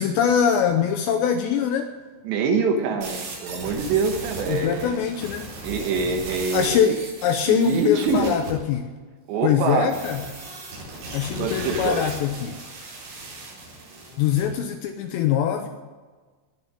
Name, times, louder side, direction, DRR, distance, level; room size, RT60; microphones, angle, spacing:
voice 1, 0.0-1.9 4.5-5.5 6.5-8.9 9.4-10.2 11.1-12.6 14.2-15.7, left 8 dB, 85° left, 7 dB, 2.6 m, -23 dB
voice 2, 2.2-5.0 5.6-7.0 7.5-8.4 9.3-10.0 11.3-12.0, right 4 dB, 70° right, 5 dB, 3.2 m, -24 dB
sound 1, 3.0-8.5 9.9-14.4, right 2 dB, 90° right, 7.1 m, -37 dB
19.5 x 6.8 x 9.7 m, 1.4 s
omnidirectional pair, 5.7 m